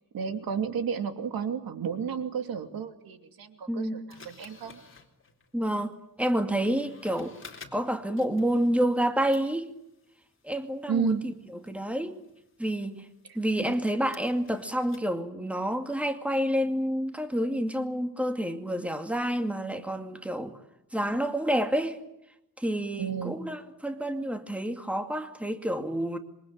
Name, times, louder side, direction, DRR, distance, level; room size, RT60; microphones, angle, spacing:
voice 1, 0.1-4.8 10.9-11.2 13.6-13.7 23.0-23.4, right 7 dB, 85° right, 2.9 m, -32 dB
voice 2, 3.7-4.1 5.5-7.4 7.7-9.7 10.4-11.3 11.7-12.2 12.6-13.1 13.3-20.6 20.9-22.0 22.6-26.2, equal, 5° right, 2.3 m, -29 dB
sound 1, 4.1-9.0 9.3-15.1, left 5 dB, 35° left, 4.1 m, -54 dB
27.0 x 24.0 x 9.0 m
wide cardioid pair, 120°, 35 cm